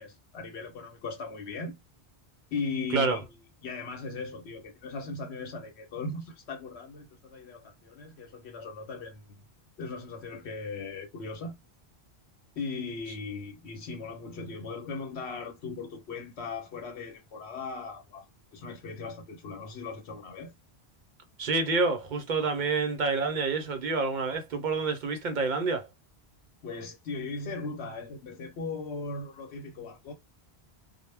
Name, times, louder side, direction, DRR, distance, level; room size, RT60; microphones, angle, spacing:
voice 1, 0.0-1.8 2.5-3.3 3.6-9.4 9.8-11.6 12.5-20.5 26.6-30.1, left 4 dB, 85° left, 1.0 m, -38 dB
voice 2, 21.4-25.9, right 4 dB, 55° right, 0.6 m, -28 dB
2.2 x 2.1 x 3.2 m
omnidirectional pair, 1.1 m